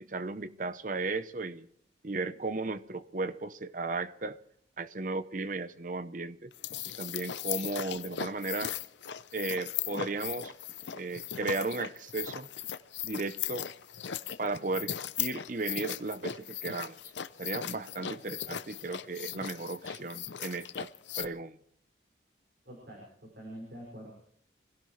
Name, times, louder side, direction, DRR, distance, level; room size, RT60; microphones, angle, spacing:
voice 1, 0.0-1.7 2.0-4.4 4.8-6.5 7.0-8.7 9.3-10.5 10.9-12.5 13.0-13.7 14.4-17.0 17.4-20.9 21.2-21.6, right 3 dB, 45° right, 0.8 m, -35 dB
sound 1, 6.5-21.3, left 10 dB, 70° left, 0.6 m, -38 dB
voice 2, 22.6-24.1, right 1 dB, 60° right, 5.9 m, -46 dB
26.5 x 16.5 x 3.3 m
head